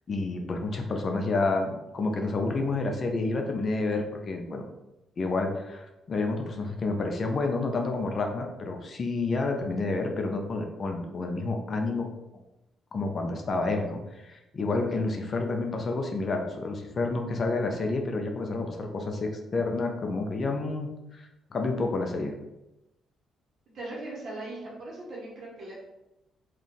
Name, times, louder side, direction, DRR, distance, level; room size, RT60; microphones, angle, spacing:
voice 1, 0.1-4.6 5.2-12.1 12.9-22.3, left 3 dB, 45° left, 3 dB, 0.5 m, -29 dB
voice 2, 23.7-25.8, right 2 dB, 60° right, -4 dB, 1.3 m, -39 dB
2.5 x 2.4 x 3.8 m, 0.94 s
cardioid pair, 90°, 0 cm